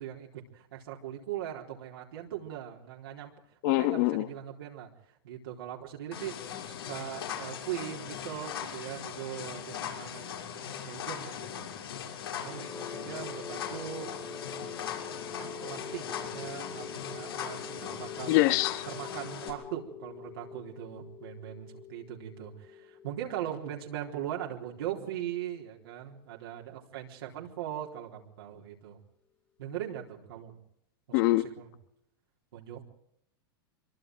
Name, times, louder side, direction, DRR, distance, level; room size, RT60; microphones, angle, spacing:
voice 1, 0.0-3.3 3.6-6.3 6.7-11.7 12.3-14.9 15.4-18.4 18.9-29.0 29.6-30.6 31.1-31.7 32.5-32.8, right 11 dB, 75° right, 4.0 m, -40 dB
voice 2, 3.6-4.3 18.3-18.8 31.1-31.5, left 19 dB, 55° left, 1.5 m, -24 dB
sound 1, 6.1-19.5, left 9 dB, 90° left, 6.3 m, -39 dB
sound 2, 12.2-26.1, left 6 dB, 10° left, 2.2 m, -45 dB
25.0 x 23.5 x 4.8 m
hypercardioid pair, 130°, 12 cm